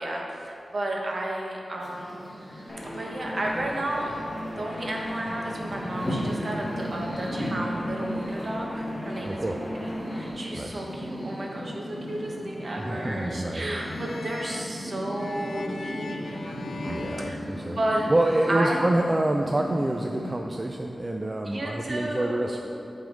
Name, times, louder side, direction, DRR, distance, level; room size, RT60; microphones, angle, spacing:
voice 1, 0.0-2.2 2.9-4.2 4.6-16.5 16.8-17.4 17.8-18.1 18.5-18.8 21.4-22.5, right 1 dB, 50° right, -1 dB, 1.1 m, -32 dB
sound 1, 1.8-20.4, equal, 10° left, 1.4 m, -36 dB
sound 2, 2.7-10.3, left 1 dB, 30° left, 1.3 m, -37 dB
voice 2, 9.2-9.6 10.5-10.8 12.8-13.7 16.7-17.8 18.1-22.6, right 1 dB, 25° right, 2 dB, 0.3 m, -27 dB
sound 3, 13.7-18.3, left 3 dB, 85° left, 0.3 m, -40 dB
8.9 x 3.6 x 5.1 m, 2.8 s
wide cardioid pair, 110°, 0 cm